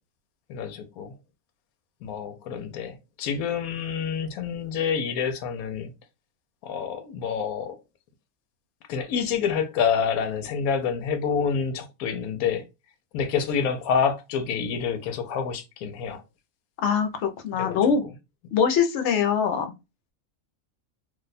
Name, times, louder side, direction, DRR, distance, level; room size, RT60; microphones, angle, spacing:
voice 1, 0.5-1.1 2.0-5.9 6.6-7.8 8.9-12.6 13.1-16.2 17.5-17.8, left 6 dB, 85° left, 1.0 m, -27 dB
voice 2, 16.8-18.0 18.5-19.7, left 6 dB, 65° left, 0.8 m, -23 dB
2.6 x 2.2 x 3.9 m
omnidirectional pair, 1.5 m